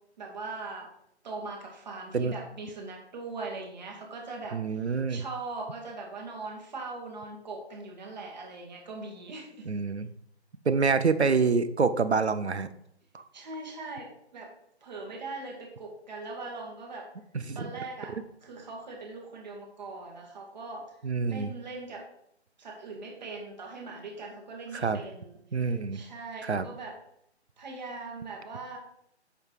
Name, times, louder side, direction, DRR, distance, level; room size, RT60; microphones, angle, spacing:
voice 1, 0.2-0.9 1.2-4.6 5.1-9.7 13.3-14.5 14.8-17.1 17.5-21.0 21.3-22.1 22.6-27.0 27.6-28.8, right 3 dB, 40° right, 0 dB, 2.5 m, -40 dB
voice 2, 4.5-5.2 9.7-10.1 10.6-12.7 13.1-13.2 17.4-17.7 21.0-21.5 24.7-25.0 25.5-26.0 26.4-26.7, right 4 dB, 70° right, 13 dB, 0.9 m, -26 dB
8.7 x 6.0 x 4.9 m, 0.74 s
figure-of-eight pair, 145°, 34 cm